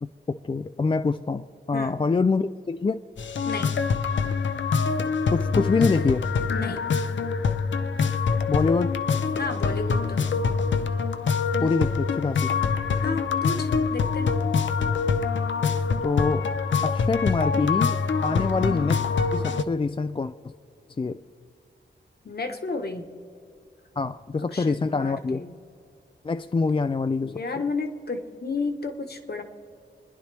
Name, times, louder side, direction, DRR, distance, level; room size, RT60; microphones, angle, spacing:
voice 1, 0.0-3.0 5.3-6.2 8.5-9.0 11.6-12.6 16.0-16.5 16.8-18.0 18.2-19.1 19.3-20.5 21.0-21.2 24.0-25.4 26.2-27.4, left 4 dB, 25° left, 10 dB, 0.4 m, -25 dB
sound 1, 3.2-19.6, left 5 dB, 75° left, 0.6 m, -25 dB
voice 2, 6.5-6.8 9.4-10.3 13.0-14.3 18.3-18.6 22.2-23.1 24.5-25.5 27.2-29.4, left 3 dB, 55° left, 6 dB, 1.3 m, -32 dB
27.5 x 10.5 x 3.4 m, 2.4 s
wide cardioid pair, 75°, 19 cm